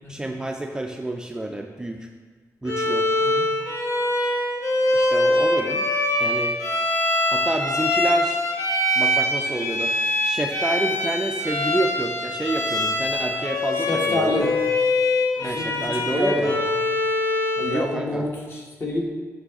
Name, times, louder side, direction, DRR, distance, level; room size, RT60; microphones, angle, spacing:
voice 1, 0.1-2.1 2.6-3.1 4.9-5.9 6.2-6.6 7.3-8.4 9.0-10.0 10.2-14.4 15.4-16.5 17.6-18.2, right 2 dB, 10° right, 3 dB, 0.3 m, -28 dB
Bowed string instrument, 2.7-17.9, left 1 dB, 75° left, 1.1 m, -23 dB
voice 2, 13.9-14.5 15.4-16.6 17.6-19.0, left 1 dB, 40° left, -2 dB, 1.2 m, -27 dB
7.3 x 5.4 x 3.6 m, 1.4 s
wide cardioid pair, 155°, 6 cm